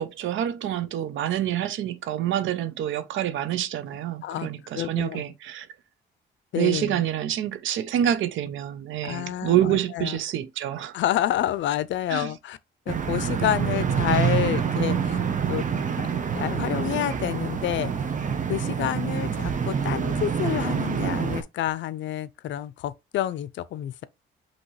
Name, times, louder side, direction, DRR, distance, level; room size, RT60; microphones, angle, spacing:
voice 1, 0.0-5.7 6.5-10.9 12.1-12.3, right 11 dB, 75° right, 0.7 m, -27 dB
voice 2, 4.7-5.2 6.5-7.0 9.0-10.2 10.9-12.6 12.9-15.2 15.5-15.7 16.0-16.1 16.3-18.1 18.5-24.0, left 12 dB, 70° left, 0.5 m, -28 dB
sound 1, 12.9-21.4, right 7 dB, 40° right, 0.8 m, -26 dB
5.4 x 2.9 x 3.2 m
cardioid pair, 90°, 20 cm